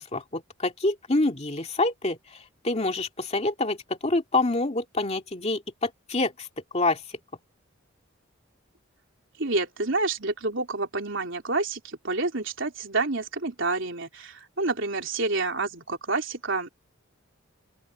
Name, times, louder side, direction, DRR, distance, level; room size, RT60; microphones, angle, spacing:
voice 1, 0.0-6.5 6.7-7.0, left 2 dB, 30° left, 2.4 m, -27 dB
voice 2, 9.4-16.7, right 3 dB, 65° right, 3.9 m, -28 dB
open air
head